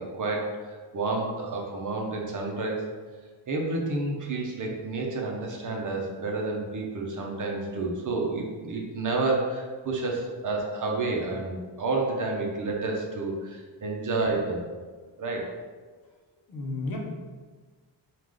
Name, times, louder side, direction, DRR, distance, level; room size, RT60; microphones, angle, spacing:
voice 1, 0.0-2.8 3.5-14.7 15.2-15.6, right 3 dB, 45° right, 0 dB, 0.7 m, -30 dB
voice 2, 16.5-17.0, left 3 dB, 55° left, -1 dB, 0.8 m, -33 dB
4.7 x 2.4 x 3.7 m, 1.4 s
wide cardioid pair, 165°, 44 cm